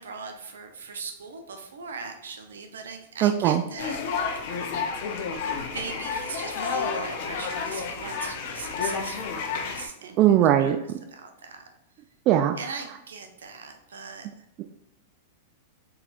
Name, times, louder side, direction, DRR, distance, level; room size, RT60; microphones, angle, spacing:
voice 1, 0.0-4.0 5.6-10.7 11.1-11.6 12.6-14.3, right 5 dB, 80° right, 5 dB, 0.7 m, -39 dB
voice 2, 3.2-3.6 10.2-10.8 12.3-12.5, right 11 dB, 40° right, 6 dB, 0.3 m, -19 dB
sound 1, 3.8-9.9, left 5 dB, 55° left, 0.7 m, -30 dB
4.2 x 4.0 x 2.5 m, 0.88 s
hypercardioid pair, 105°, 0 cm